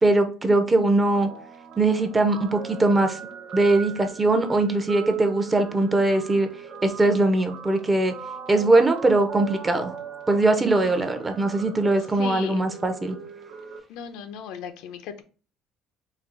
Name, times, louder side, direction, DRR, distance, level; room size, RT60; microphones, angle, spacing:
voice 1, 0.0-1.3 1.8-3.2 3.5-6.5 6.8-8.1 8.5-9.9 10.3-13.2, right 2 dB, 15° right, 0.6 m, -21 dB
Guitar, 1.1-13.8, right 5 dB, 70° right, 0.9 m, -39 dB
voice 2, 12.2-12.6 13.9-15.2, left 8 dB, 85° left, 0.7 m, -36 dB
4.2 x 2.8 x 3.8 m
cardioid pair, 160°, 0 cm